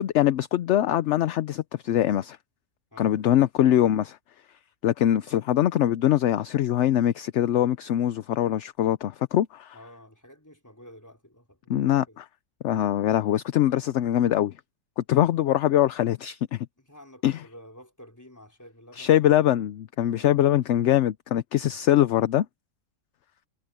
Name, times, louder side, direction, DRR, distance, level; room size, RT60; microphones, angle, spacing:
voice 1, 0.0-2.4 3.0-4.2 4.8-9.8 11.7-12.3 12.6-14.5 15.0-16.7 17.2-17.4 19.0-22.5, left 12 dB, 65° left, 0.8 m, -23 dB
voice 2, 2.9-3.2 9.7-12.2 16.8-19.7 20.1-20.4, left 1 dB, 10° left, 4.3 m, -50 dB
omnidirectional pair, 1.5 m